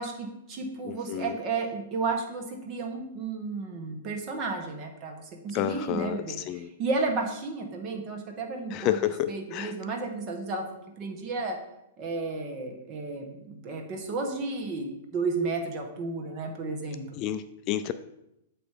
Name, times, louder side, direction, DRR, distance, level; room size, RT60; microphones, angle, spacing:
voice 1, 0.0-10.6 11.0-11.6 12.0-17.2, right 3 dB, 35° right, 3 dB, 1.2 m, -33 dB
voice 2, 0.9-1.4 5.5-6.2 6.5-6.7 8.7-9.7 17.2-17.9, left 11 dB, 40° left, 12 dB, 0.3 m, -30 dB
8.0 x 3.0 x 4.8 m, 0.84 s
hypercardioid pair, 135°, 0 cm